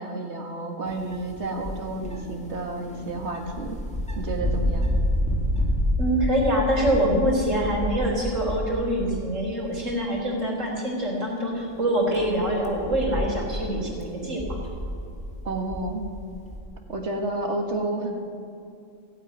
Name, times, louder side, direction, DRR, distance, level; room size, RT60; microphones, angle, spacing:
voice 1, 0.0-3.8 4.2-4.9 15.4-16.0 16.9-18.2, right 2 dB, 65° right, 3 dB, 2.0 m, -30 dB
sound 1, 0.9-9.3 9.7-10.1 10.7-10.8 11.6-16.6, left 1 dB, 5° left, 1.9 m, -29 dB
voice 2, 6.0-14.4, right 1 dB, 85° right, -1 dB, 3.8 m, -25 dB
16.0 x 8.9 x 9.4 m, 2.6 s
omnidirectional pair, 1.3 m